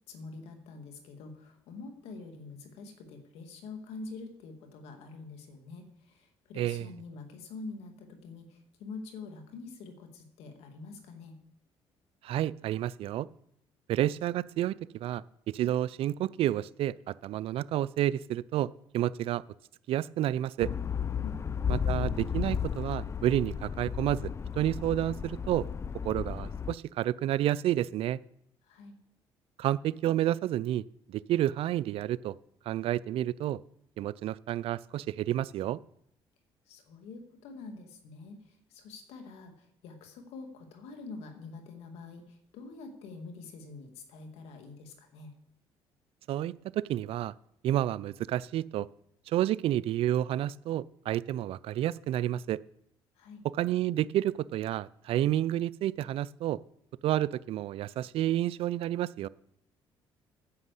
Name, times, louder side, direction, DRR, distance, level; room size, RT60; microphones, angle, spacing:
voice 1, 0.1-11.4 21.2-21.4 28.6-29.0 36.7-45.3 53.2-53.5, left 3 dB, 80° left, 5 dB, 1.9 m, -46 dB
voice 2, 6.6-6.9 12.2-13.3 13.9-19.4 19.9-20.7 21.7-25.7 26.0-28.2 29.6-32.4 32.7-33.6 34.0-35.8 46.3-47.3 47.6-48.9 49.3-52.6 53.6-56.6 57.0-59.3, right 13 dB, 65° right, 20 dB, 0.4 m, -30 dB
sound 1, 20.6-26.7, left 7 dB, 25° left, 0.4 m, -33 dB
9.5 x 6.1 x 8.1 m, 0.74 s
supercardioid pair, 85°, 10 cm